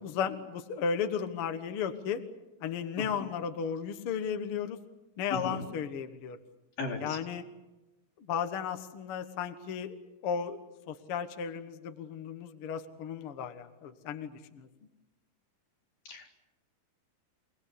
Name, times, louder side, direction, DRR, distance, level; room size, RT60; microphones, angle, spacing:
voice 1, 0.0-2.2 2.6-4.8 5.2-6.4 7.0-7.4 8.3-10.0 10.2-10.6 10.9-14.7, left 7 dB, 55° left, 8 dB, 1.8 m, -34 dB
voice 2, 5.3-5.6 6.8-7.2 16.1-16.3, left 3 dB, 85° left, -3 dB, 6.0 m, -35 dB
28.0 x 19.0 x 8.4 m, 1.0 s
omnidirectional pair, 3.9 m